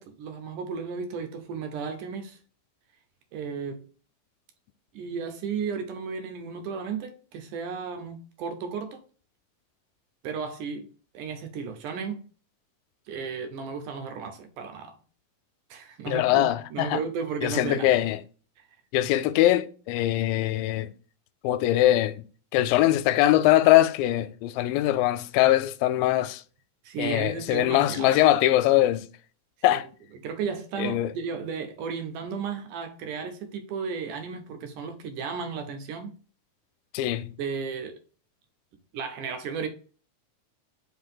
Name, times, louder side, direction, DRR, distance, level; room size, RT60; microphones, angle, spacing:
voice 1, 0.0-2.4 3.3-3.8 4.9-9.0 10.2-10.9 11.1-12.2 13.1-15.0 15.7-18.0 26.8-28.2 29.7-29.8 30.2-36.1 37.4-38.0 38.9-39.7, right 6 dB, 75° right, 2.3 m, -34 dB
voice 2, 16.1-17.0 17.4-18.2 18.9-20.9 21.4-22.2 22.5-26.4 27.0-29.1 29.6-29.9 30.8-31.1 36.9-37.3, left 14 dB, 85° left, 2.3 m, -22 dB
5.2 x 3.9 x 5.5 m
omnidirectional pair, 4.0 m